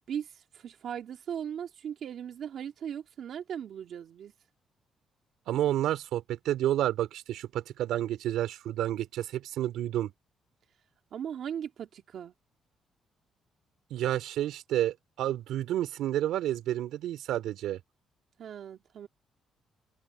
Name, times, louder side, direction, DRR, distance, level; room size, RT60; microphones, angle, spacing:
voice 1, 0.1-4.3 11.1-12.3 18.4-19.1, right 8 dB, 65° right, 2.0 m, -38 dB
voice 2, 5.5-10.1 13.9-17.8, right 12 dB, 85° right, 3.3 m, -30 dB
cardioid pair, 90°, 0 cm